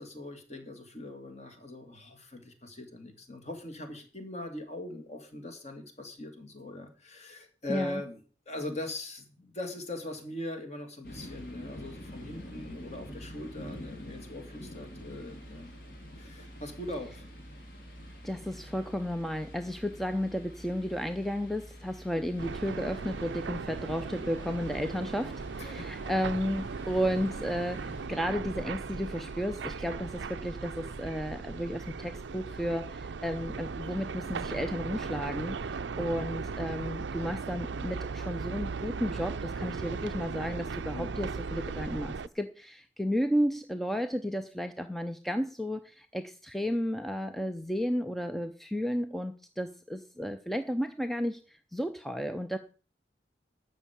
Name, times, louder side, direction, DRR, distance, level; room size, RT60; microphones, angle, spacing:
voice 1, 0.0-8.2 8.5-15.8 16.2-17.2 25.6-25.9 40.9-41.1, left 1 dB, 40° left, 5 dB, 2.6 m, -41 dB
voice 2, 7.7-8.0 18.2-52.6, equal, ahead, 8 dB, 0.6 m, -33 dB
sound 1, 11.0-28.1, equal, 55° left, 3.3 m, -47 dB
sound 2, 22.4-42.3, right 4 dB, 80° right, 0.5 m, -37 dB
13.0 x 5.3 x 8.5 m, 0.39 s
head